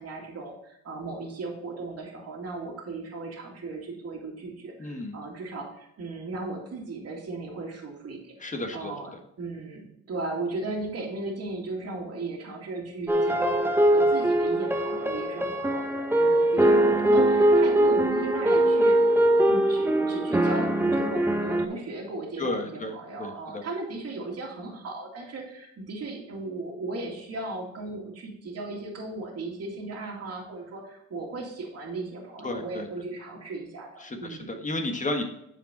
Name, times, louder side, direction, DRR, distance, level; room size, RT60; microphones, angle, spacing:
voice 1, 0.0-8.3 8.7-9.1 9.4-34.5, right 2 dB, 55° right, -1 dB, 2.3 m, -36 dB
voice 2, 4.8-5.1 8.4-8.9 16.6-16.8 22.4-23.6 32.4-32.9 34.0-35.2, left 2 dB, 25° left, 4 dB, 1.4 m, -33 dB
sound 1, 13.1-21.7, right 1 dB, 5° right, 0.9 m, -22 dB
8.9 x 5.0 x 4.2 m, 0.79 s
cardioid pair, 90°, 30 cm